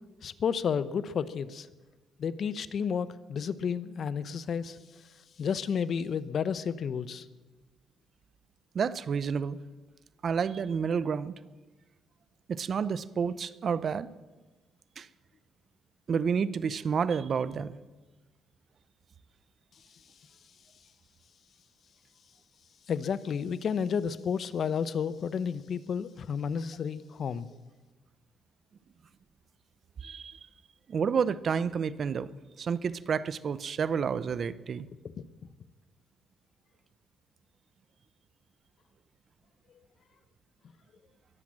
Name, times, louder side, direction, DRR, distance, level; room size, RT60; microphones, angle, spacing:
voice 1, 0.2-1.7 2.2-4.8 5.4-7.2 22.9-27.5, left 7 dB, 55° left, 16 dB, 0.7 m, -31 dB
voice 2, 8.7-9.6 10.2-11.3 12.5-14.1 15.0-15.1 16.1-17.8 30.0-30.4 30.9-32.3 32.6-34.9, right 6 dB, 50° right, 17 dB, 0.6 m, -30 dB
21.5 x 7.6 x 7.4 m, 1.2 s
cardioid pair, 90°, 0 cm